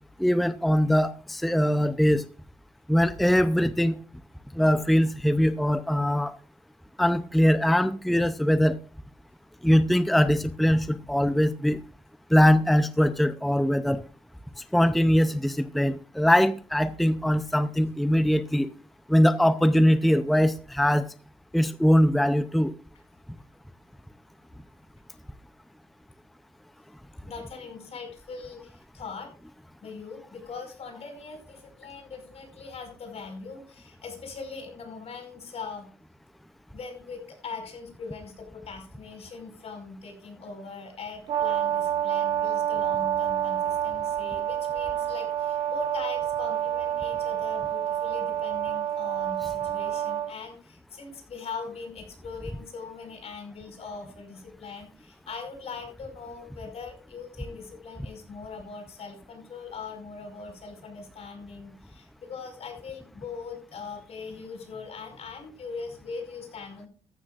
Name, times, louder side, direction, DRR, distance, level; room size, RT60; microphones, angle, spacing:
voice 1, 0.2-2.2 2.9-3.9 4.6-6.3 7.0-8.8 9.6-11.8 12.3-14.0 14.7-18.7 19.1-21.0 21.5-22.7, equal, ahead, 0.5 m, -22 dB
voice 2, 27.3-29.3 29.8-35.9 36.7-66.9, left 4 dB, 65° left, 5.2 m, -41 dB
Brass instrument, 41.3-50.3, right 10 dB, 90° right, 1.7 m, -28 dB
14.0 x 12.5 x 2.4 m
cardioid pair, 110°, 11 cm